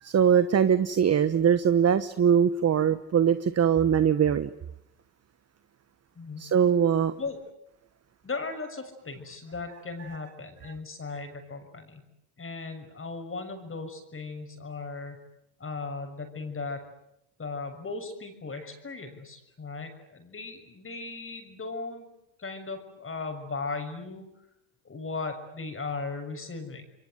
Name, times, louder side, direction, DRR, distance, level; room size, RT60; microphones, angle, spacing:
voice 1, 0.0-4.5 6.4-7.1, right 8 dB, 35° right, 1.2 m, -22 dB
voice 2, 8.2-12.0 12.4-15.2 15.6-16.8 17.4-22.1 22.4-24.3 24.8-26.8, left 4 dB, 30° left, 6.7 m, -37 dB
28.5 x 22.5 x 9.3 m
supercardioid pair, 85°, 45 cm